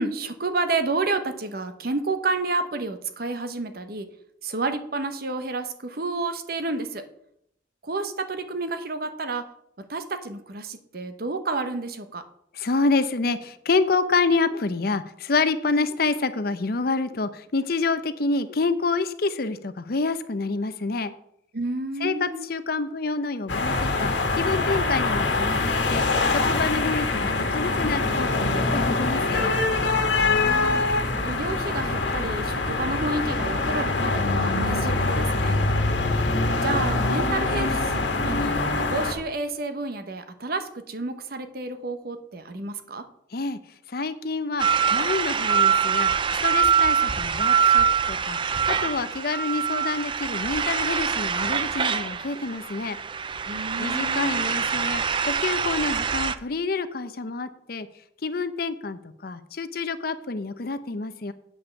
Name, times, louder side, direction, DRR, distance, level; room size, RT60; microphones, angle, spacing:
voice 1, 0.0-4.1 4.4-7.0 7.8-9.4 9.8-12.2 21.5-22.5 30.2-30.8 31.2-35.6 36.6-38.6 38.9-43.1 53.5-54.5, right 3 dB, 55° right, 9 dB, 0.9 m, -30 dB
voice 2, 12.5-21.1 22.0-26.0 26.3-29.6 43.3-43.6 43.9-46.1 46.4-53.0 53.8-57.9 58.2-61.3, left 3 dB, 55° left, 12 dB, 0.6 m, -27 dB
sound 1, 23.5-39.1, left 3 dB, 75° left, 1.5 m, -24 dB
sound 2, 44.6-56.3, right 7 dB, 25° right, 0.4 m, -24 dB
8.5 x 5.5 x 7.1 m, 0.74 s
head